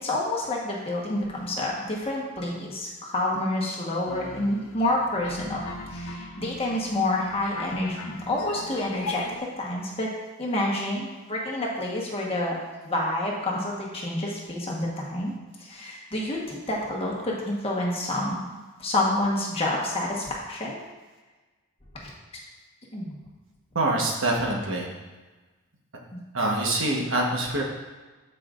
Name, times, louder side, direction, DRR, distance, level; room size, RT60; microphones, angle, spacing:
voice 1, 0.0-10.1 10.4-12.5 12.8-15.3 15.6-18.5 18.8-20.8 22.0-22.1 22.9-23.2 26.1-26.2, left 1 dB, 25° left, -3 dB, 1.3 m, -28 dB
sound 1, 4.1-9.4, left 2 dB, 75° left, 0.8 m, -38 dB
voice 2, 23.7-24.9 26.3-27.6, right 2 dB, 65° right, -1 dB, 1.3 m, -25 dB
13.0 x 4.9 x 2.5 m, 1.2 s
head